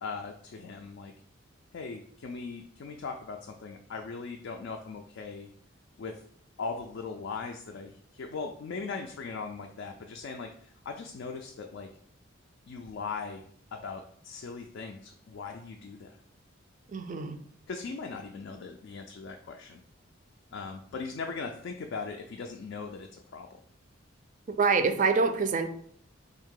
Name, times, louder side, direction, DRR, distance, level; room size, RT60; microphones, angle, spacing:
voice 1, 0.0-1.1 1.7-5.5 6.0-6.2 6.6-11.9 12.7-13.4 13.7-16.2 17.7-19.8 20.5-23.5, left 4 dB, 60° left, 3 dB, 0.3 m, -39 dB
voice 2, 16.9-17.4 24.6-25.7, right 4 dB, 40° right, 8 dB, 0.4 m, -25 dB
3.6 x 2.7 x 3.7 m, 0.63 s
head